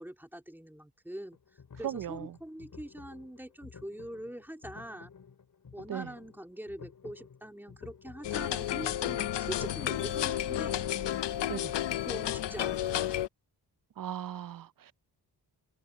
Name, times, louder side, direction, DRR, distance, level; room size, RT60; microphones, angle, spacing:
voice 1, 0.0-5.1 5.7-10.8 12.0-13.2, right 1 dB, 5° right, 3.0 m, -43 dB
sound 1, 1.3-9.4, left 6 dB, 50° left, 3.4 m, -53 dB
voice 2, 1.8-2.3 5.9-6.1 11.5-11.7 14.0-14.9, right 11 dB, 55° right, 0.5 m, -37 dB
sound 2, 8.2-13.3, left 12 dB, 85° left, 0.7 m, -32 dB
wide cardioid pair, 140°, 41 cm